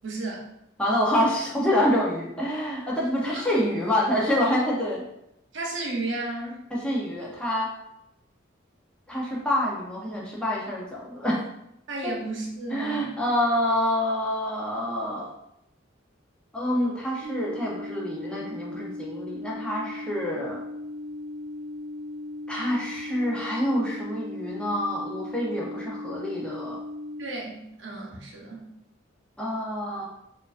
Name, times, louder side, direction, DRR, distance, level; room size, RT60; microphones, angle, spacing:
voice 1, 0.0-0.5 3.2-3.4 5.5-6.6 11.9-13.1 27.2-28.7, right 2 dB, 65° right, -1 dB, 0.8 m, -33 dB
voice 2, 0.8-5.0 6.7-7.7 9.1-11.4 12.0-12.1 12.7-15.3 16.5-20.6 22.5-26.8 29.4-30.0, left 1 dB, 5° left, -5 dB, 0.8 m, -27 dB
sound 1, 17.2-27.2, left 1 dB, 35° right, 0.7 m, -37 dB
4.4 x 2.6 x 2.5 m, 0.81 s
head